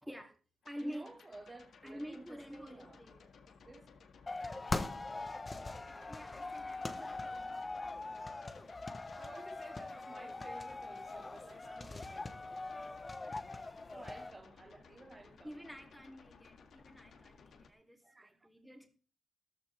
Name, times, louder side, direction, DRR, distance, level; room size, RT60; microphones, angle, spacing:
voice 1, 0.0-0.3 0.6-1.1 1.8-3.3 6.1-8.2 15.4-18.9, equal, ahead, 2.5 m, -48 dB
sound 1, 0.6-17.7, left 5 dB, 65° left, 1.8 m, -60 dB
voice 2, 0.8-3.0 3.6-3.9 6.8-7.2 9.1-12.4 13.9-15.6 18.0-18.5, right 2 dB, 20° right, 1.5 m, -54 dB
sound 2, 4.3-14.3, left 3 dB, 20° left, 0.9 m, -42 dB
15.0 x 14.0 x 3.4 m
wide cardioid pair, 155°, 0 cm